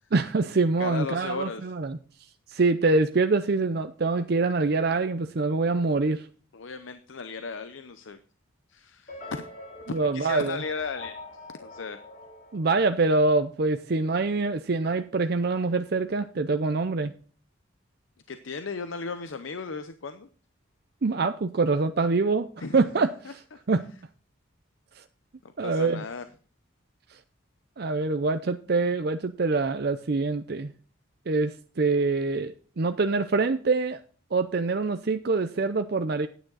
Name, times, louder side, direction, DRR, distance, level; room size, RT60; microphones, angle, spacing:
voice 1, 0.1-2.0 2.5-6.3 9.9-10.6 12.5-17.1 21.0-23.4 23.7-23.9 25.0-25.1 25.6-26.0 27.8-30.7 31.3-34.0 34.3-36.3, right 3 dB, 50° right, 9 dB, 0.5 m, -25 dB
voice 2, 0.8-1.7 6.5-8.2 8.7-9.4 10.0-11.2 11.6-12.0 18.3-20.3 22.6-22.9 23.2-23.6 25.6-26.3, left 4 dB, 70° left, 10 dB, 0.7 m, -36 dB
sound 1, 9.1-13.4, left 2 dB, 45° left, 5.8 m, -44 dB
10.0 x 8.9 x 4.0 m, 0.41 s
head